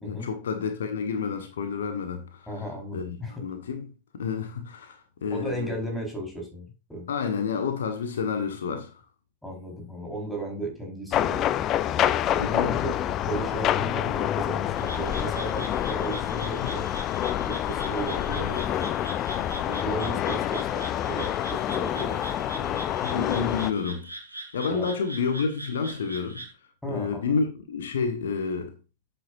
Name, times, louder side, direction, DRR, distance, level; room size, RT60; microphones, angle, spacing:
voice 1, 0.0-2.6 2.9-5.8 7.1-9.0 12.4-12.8 22.7-24.1 24.5-26.4 26.9-28.7, left 5 dB, 65° left, 1.3 m, -30 dB
voice 2, 2.5-3.4 5.3-7.1 9.4-11.4 12.3-12.9 13.2-16.9 17.4-18.9 19.6-22.2 22.5-23.0 24.7-24.9 26.8-27.2, right 1 dB, 5° left, 4.3 m, -35 dB
sound 1, 11.1-23.7, left 11 dB, 35° left, 0.6 m, -27 dB
Frog, 14.8-26.5, right 2 dB, 85° right, 2.6 m, -42 dB
10.5 x 8.2 x 2.6 m
figure-of-eight pair, 90°, 0 cm